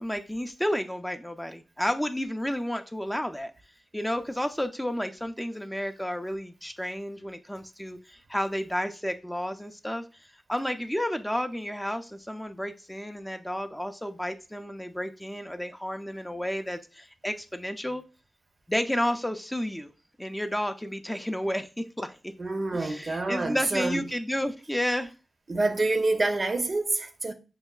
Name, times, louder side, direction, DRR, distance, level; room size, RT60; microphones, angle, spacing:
voice 1, 0.0-3.5 3.9-18.0 18.7-19.9 20.2-22.3 22.7-25.1, equal, 10° left, 0.4 m, -31 dB
voice 2, 22.4-24.0 25.5-27.3, right 2 dB, 45° right, 0.5 m, -27 dB
5.3 x 2.1 x 2.3 m
cardioid pair, 45°, 0 cm